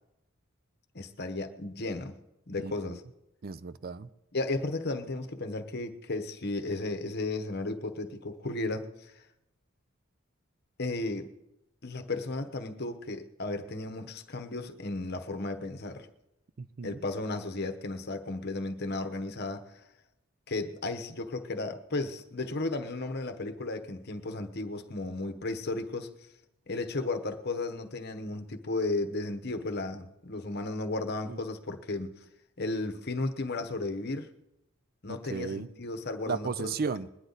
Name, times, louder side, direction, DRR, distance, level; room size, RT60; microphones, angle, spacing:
voice 1, 0.9-2.1 2.5-3.0 4.3-9.2 10.8-11.3 11.8-16.1 16.8-19.8 20.5-26.1 26.7-32.1 32.6-34.3 35.0-36.7, left 2 dB, 50° left, 1.0 m, -34 dB
voice 2, 2.6-3.0 3.4-4.1 16.6-17.0 31.3-31.4 35.3-35.7 36.3-37.1, right 5 dB, 45° right, 0.4 m, -35 dB
21.5 x 10.0 x 4.0 m
head